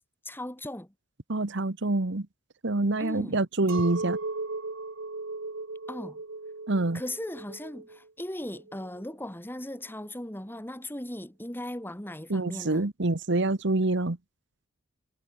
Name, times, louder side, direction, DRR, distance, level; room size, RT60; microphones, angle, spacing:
voice 1, 0.2-0.9 3.0-3.4 5.9-6.2 6.9-12.9, left 1 dB, 10° left, 2.5 m, -38 dB
voice 2, 1.3-2.3 2.6-4.2 6.7-7.0 12.3-14.2, right 2 dB, 60° right, 1.2 m, -26 dB
Chink clink, 3.7-9.1, right 3 dB, 80° right, 1.6 m, -37 dB
head